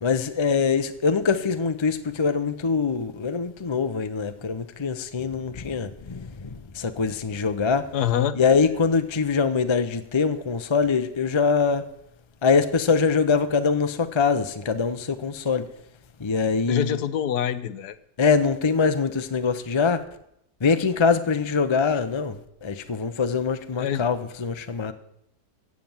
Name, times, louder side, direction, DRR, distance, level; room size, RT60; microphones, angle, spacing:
voice 1, 0.0-7.8 8.4-11.8 12.4-15.6 16.2-17.0 18.2-20.0 20.6-22.4 22.6-24.9, left 5 dB, 35° left, 0.4 m, -23 dB
voice 2, 7.9-8.4 16.7-18.0 23.8-24.1, left 10 dB, 70° left, 1.3 m, -25 dB
15.5 x 7.7 x 7.2 m
omnidirectional pair, 1.8 m